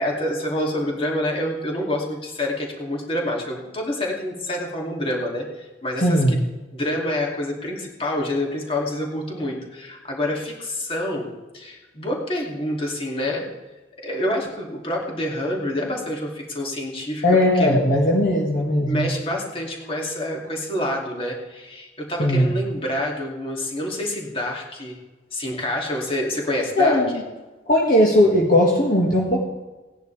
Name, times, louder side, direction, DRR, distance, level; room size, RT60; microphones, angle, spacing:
voice 1, 0.0-6.4 6.7-13.5 14.0-17.2 17.5-17.8 18.8-25.0 25.3-27.0, left 1 dB, 30° left, -2 dB, 2.7 m, -27 dB
voice 2, 6.0-6.4 17.2-19.1 22.2-22.6 26.8-27.2 27.7-29.4, left 1 dB, 50° left, -2 dB, 1.9 m, -18 dB
18.0 x 10.5 x 3.4 m, 1.2 s
head